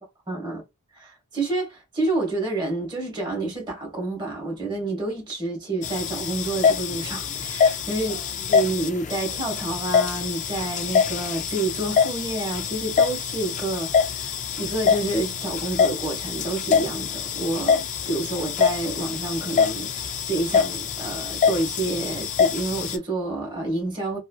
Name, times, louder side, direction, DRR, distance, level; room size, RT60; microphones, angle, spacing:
voice 1, 0.3-0.6 0.9-8.2 8.5-24.2, right 2 dB, 20° right, 1.3 m, -29 dB
sound 1, 5.8-23.0, left 6 dB, 35° left, 0.4 m, -25 dB
3.1 x 2.5 x 2.3 m
head